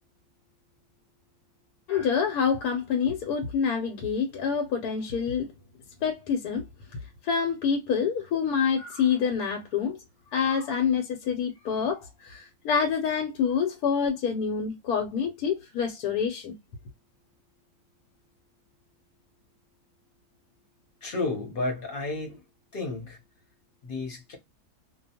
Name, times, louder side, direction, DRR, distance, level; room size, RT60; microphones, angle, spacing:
voice 1, 1.9-5.5 6.0-6.6 7.2-10.0 10.3-16.5, left 6 dB, 80° left, 1.1 m, -27 dB
voice 2, 21.0-22.4 22.7-23.2 23.8-24.4, left 2 dB, 40° left, 0.9 m, -32 dB
2.4 x 2.2 x 2.7 m
omnidirectional pair, 1.6 m